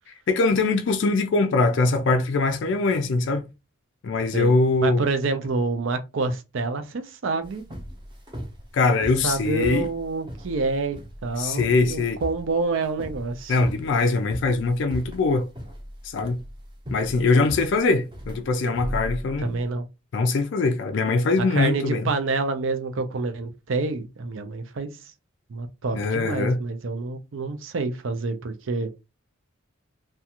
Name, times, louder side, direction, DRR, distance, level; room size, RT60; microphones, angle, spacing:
voice 1, 0.3-3.4 4.0-5.0 8.7-9.9 11.4-12.2 13.5-15.5 16.0-16.4 16.9-19.6 20.1-22.1 25.9-26.6, left 3 dB, 60° left, 0.3 m, -22 dB
voice 2, 4.8-7.6 9.2-13.6 19.4-19.9 21.4-24.9 25.5-28.9, right 3 dB, 65° right, 0.5 m, -27 dB
sound 1, 7.4-19.6, equal, 20° right, 0.6 m, -37 dB
2.4 x 2.2 x 2.8 m
head